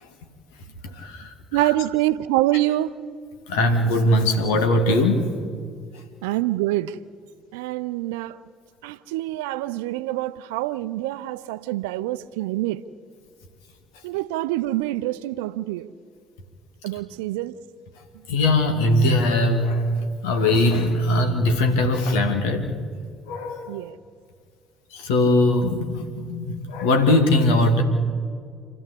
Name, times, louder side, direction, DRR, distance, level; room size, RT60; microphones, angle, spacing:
voice 1, 0.8-1.3 3.5-5.3 18.3-22.7 23.3-23.8 24.9-27.8, left 1 dB, 70° left, 2.4 m, -20 dB
voice 2, 1.5-3.0 6.2-7.0 7.5-8.4 8.8-12.8 14.0-15.9 16.8-17.6 23.7-24.0, right 16 dB, 75° right, 0.6 m, -26 dB
28.5 x 13.5 x 8.4 m
figure-of-eight pair, 50°, 0 cm